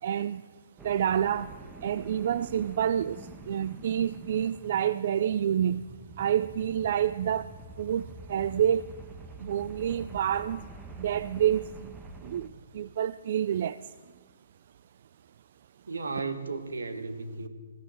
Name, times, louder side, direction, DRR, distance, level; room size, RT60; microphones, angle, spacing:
voice 1, 0.0-0.4 0.8-1.5 1.8-5.8 6.2-7.5 7.8-8.8 9.4-10.6 11.0-11.9 12.2-12.5 12.7-13.8, right 9 dB, 55° right, 0.3 m, -28 dB
sound 1, 0.8-12.5, right 3 dB, 15° right, 1.1 m, -46 dB
voice 2, 15.9-17.5, right 3 dB, 80° right, 1.3 m, -35 dB
15.0 x 12.5 x 4.4 m
figure-of-eight pair, 130°, 0 cm